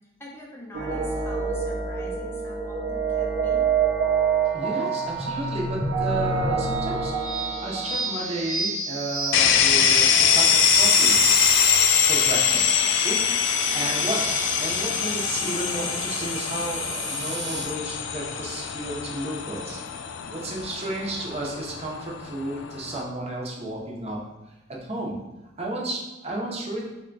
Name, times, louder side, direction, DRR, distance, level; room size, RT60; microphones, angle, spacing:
voice 1, 0.2-3.7 12.4-12.7 13.7-14.1 20.2-20.5, left 1 dB, 15° left, -3 dB, 0.6 m, -43 dB
sound 1, 0.7-17.6, right 5 dB, 90° right, 0.6 m, -28 dB
voice 2, 4.5-7.1 7.6-10.1 10.3-11.2 12.0-14.2 14.6-19.8 20.3-24.2 24.8-25.1 25.6-26.8, right 1 dB, 35° right, -2 dB, 0.7 m, -32 dB
sound 2, 9.3-23.0, left 8 dB, 85° left, 0.3 m, -23 dB
3.6 x 2.2 x 3.8 m, 1.0 s
head